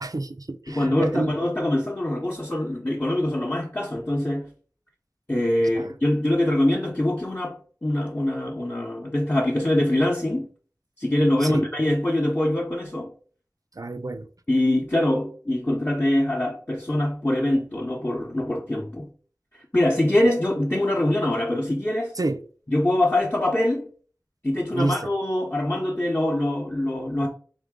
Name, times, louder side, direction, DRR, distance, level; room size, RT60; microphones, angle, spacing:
voice 1, 0.0-1.3 5.7-5.9 11.4-11.6 13.8-14.3 22.2-22.4 24.7-25.1, right 2 dB, 60° right, 0.5 m, -28 dB
voice 2, 0.7-4.5 5.3-10.5 11.0-13.1 14.5-19.1 19.7-22.1 22.7-23.9 24.4-27.3, left 1 dB, 30° left, 0.7 m, -24 dB
3.7 x 3.1 x 3.6 m
wide cardioid pair, 40°, 7 cm